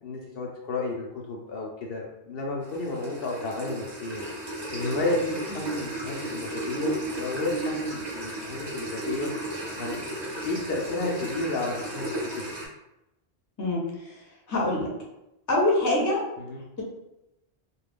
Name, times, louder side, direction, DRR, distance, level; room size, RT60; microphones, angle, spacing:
voice 1, 0.0-4.2 4.7-9.3 9.8-12.4 16.4-16.6, left 2 dB, 65° left, -1 dB, 0.7 m, -32 dB
sound 1, 2.6-12.7, right 2 dB, 30° right, 0.6 m, -34 dB
voice 2, 14.5-14.9 15.5-16.2, left 1 dB, 20° left, -3 dB, 0.6 m, -23 dB
2.4 x 2.2 x 3.4 m, 0.89 s
omnidirectional pair, 1.1 m